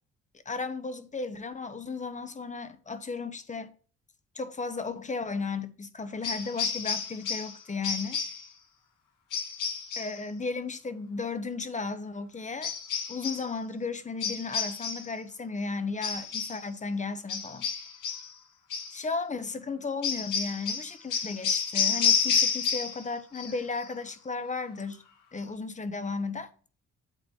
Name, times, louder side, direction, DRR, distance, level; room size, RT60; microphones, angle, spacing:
voice 1, 0.5-3.7 4.3-8.2 10.0-12.7 13.1-17.7 18.9-25.0 25.3-26.5, left 4 dB, 25° left, 0.8 m, -34 dB
sound 1, 6.2-7.6 7.8-8.5 9.3-10.2 12.6-13.5 14.2-15.1 16.0-16.6 17.3-18.3 18.7-19.0 20.0-23.1 23.3-23.8, left 6 dB, 90° left, 1.9 m, -30 dB
8.4 x 3.9 x 3.4 m
cardioid pair, 90°, 30 cm